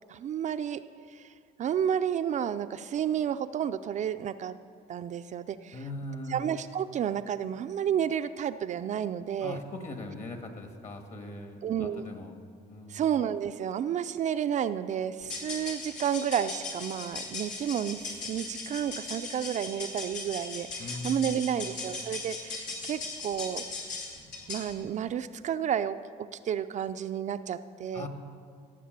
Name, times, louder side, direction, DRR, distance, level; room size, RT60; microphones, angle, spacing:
voice 1, 0.1-0.8 1.1-1.3 1.6-4.6 4.9-5.8 6.3-9.6 11.6-12.1 12.9-23.6 24.5-26.0 26.3-28.1, right 9 dB, 45° right, 10 dB, 0.4 m, -31 dB
voice 2, 5.7-6.4 9.4-12.3 12.7-13.0 20.8-21.9 27.9-28.1, left 1 dB, 45° left, 5 dB, 1.8 m, -40 dB
sound 1, 15.2-24.7, left 3 dB, 85° left, 2.9 m, -39 dB
17.0 x 7.3 x 6.6 m, 2.2 s
cardioid pair, 110°, 17 cm